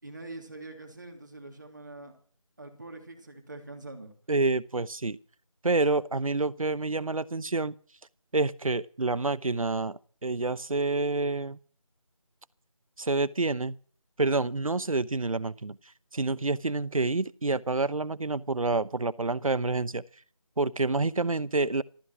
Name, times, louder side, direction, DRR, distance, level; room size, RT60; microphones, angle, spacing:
voice 1, 0.0-2.2 2.6-4.1, right 2 dB, 35° right, 3.2 m, -44 dB
voice 2, 4.3-5.2 5.6-7.7 8.3-11.6 13.0-13.7 14.2-15.8 16.1-20.0 20.6-21.8, right 3 dB, 75° right, 0.9 m, -28 dB
15.5 x 14.5 x 6.1 m
figure-of-eight pair, 180°, 18 cm